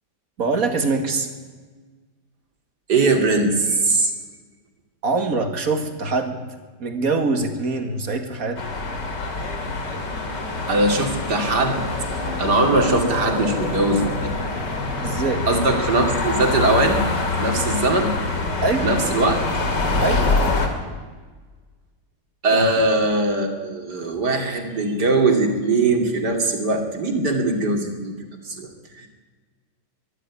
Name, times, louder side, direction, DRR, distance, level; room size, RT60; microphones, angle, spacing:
voice 1, 0.4-1.3 5.0-6.4 6.8-8.6 15.0-15.4 18.6-18.9 20.0-20.3 20.6-20.7 22.5-22.7, right 3 dB, 55° right, 6 dB, 2.4 m, -23 dB
voice 2, 2.9-4.1 10.7-11.8 12.4-14.3 15.5-17.0 17.4-18.1 18.8-19.4 22.4-28.2 28.4-28.7 29.0-29.1, right 2 dB, 70° right, 3 dB, 3.2 m, -20 dB
sound 1, 8.6-20.7, left 3 dB, 85° left, 3.1 m, -25 dB
23.5 x 11.5 x 9.7 m, 1.4 s
omnidirectional pair, 1.8 m